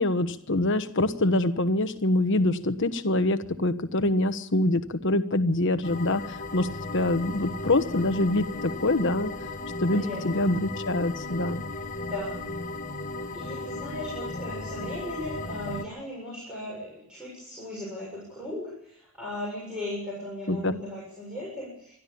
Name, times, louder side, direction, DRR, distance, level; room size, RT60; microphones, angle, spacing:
voice 1, 0.0-9.3 9.8-11.6 20.5-20.8, left 2 dB, 55° left, 10 dB, 1.3 m, -25 dB
sound 1, 5.8-15.8, left 2 dB, 35° left, 1.4 m, -36 dB
voice 2, 9.8-10.5 12.0-12.5 13.3-21.9, left 1 dB, 5° right, -6 dB, 7.1 m, -37 dB
25.0 x 12.5 x 8.6 m, 0.74 s
head